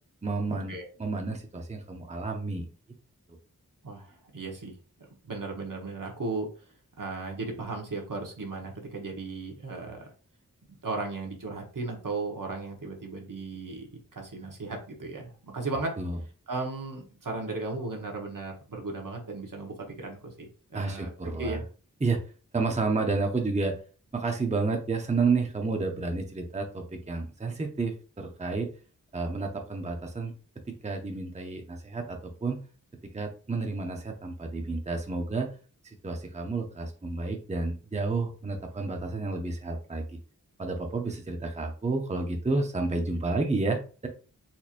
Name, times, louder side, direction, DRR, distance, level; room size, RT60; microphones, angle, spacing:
voice 1, 0.2-2.6 16.0-16.2 20.7-21.6 22.0-22.2 22.5-23.7 24.1-28.7 29.1-30.3 30.8-32.6 33.1-35.5 36.0-40.2 40.6-44.1, right 3 dB, 20° right, 3 dB, 0.6 m, -30 dB
voice 2, 3.8-6.5 7.0-10.1 10.8-13.9 14.1-16.0 16.5-21.6, right 3 dB, 70° right, 1 dB, 1.1 m, -36 dB
4.3 x 2.9 x 2.5 m, 0.37 s
wide cardioid pair, 65°, 33 cm